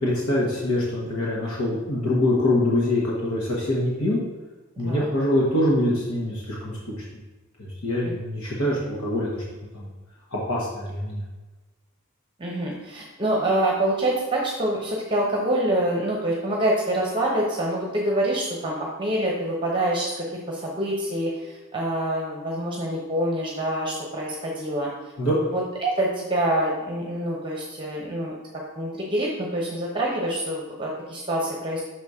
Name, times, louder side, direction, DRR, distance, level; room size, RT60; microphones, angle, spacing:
voice 1, 0.0-4.2 4.8-7.0 7.6-9.4 9.7-9.9 10.3-11.2 25.2-25.4, left 1 dB, 80° left, -5 dB, 1.3 m, -24 dB
voice 2, 12.4-24.9 25.5-28.4 28.8-31.8, right 1 dB, 25° right, -2 dB, 0.9 m, -26 dB
6.3 x 4.1 x 4.8 m, 1.2 s
head